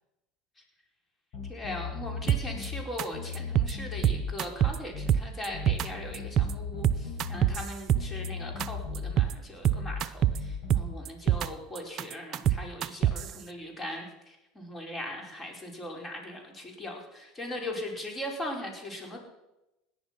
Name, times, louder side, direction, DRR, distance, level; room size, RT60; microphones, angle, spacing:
sound 1, 1.3-2.9 3.1-4.4 4.9-5.2 5.5-7.7 7.9-9.2 9.7-10.0 10.3-10.9, left 5 dB, 55° left, 5.5 m, -37 dB
voice 1, 1.5-19.2, left 1 dB, 20° left, 1 dB, 4.9 m, -39 dB
sound 2, 2.3-2.7 3.0-3.1 3.3-3.7 4.0-4.8 5.1-5.9 6.1-6.5 6.8-8.3 8.6-8.7 8.9-9.3 9.6-10.4 10.7-11.5 11.8-13.3, right 10 dB, 45° right, 0.7 m, -25 dB
17.5 x 10.5 x 6.1 m, 0.96 s
hypercardioid pair, 85°, 0 cm